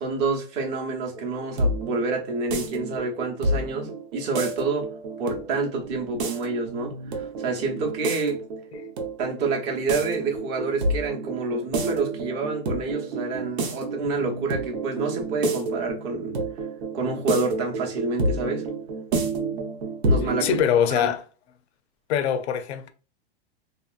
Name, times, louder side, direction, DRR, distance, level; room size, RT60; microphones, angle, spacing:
voice 1, 0.0-4.9 5.2-8.4 9.2-16.3 16.9-18.7 20.1-20.5 20.9-21.1, right 3 dB, 35° right, 0.8 m, -28 dB
sound 1, 1.2-20.6, right 2 dB, 85° right, 1.0 m, -29 dB
voice 2, 20.4-21.2 22.1-22.9, left 9 dB, 85° left, 0.6 m, -23 dB
2.9 x 2.9 x 2.4 m
supercardioid pair, 150°, 32 cm